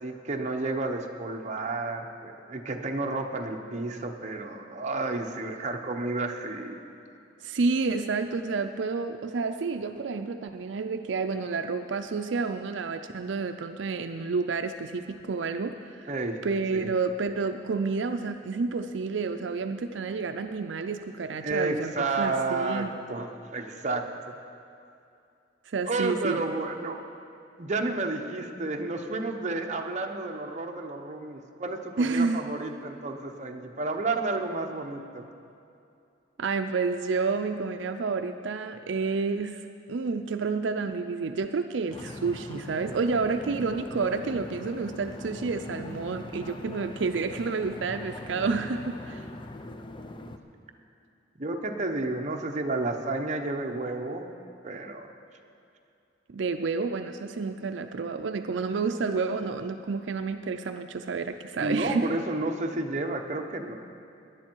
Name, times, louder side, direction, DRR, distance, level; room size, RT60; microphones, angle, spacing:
voice 1, 0.0-6.8 16.1-16.4 16.7-16.9 21.4-24.4 25.9-27.0 27.6-35.3 43.3-43.4 51.4-54.3 54.6-55.1 61.6-63.7, right 2 dB, 40° right, 3 dB, 0.9 m, -31 dB
voice 2, 7.4-16.1 16.4-22.9 25.7-26.4 32.0-32.4 36.4-39.6 39.9-49.2 56.3-62.1, right 4 dB, 80° right, 7 dB, 0.5 m, -30 dB
sound 1, 41.9-50.4, left 1 dB, 25° left, 0.6 m, -41 dB
18.0 x 10.5 x 4.6 m, 2.5 s
head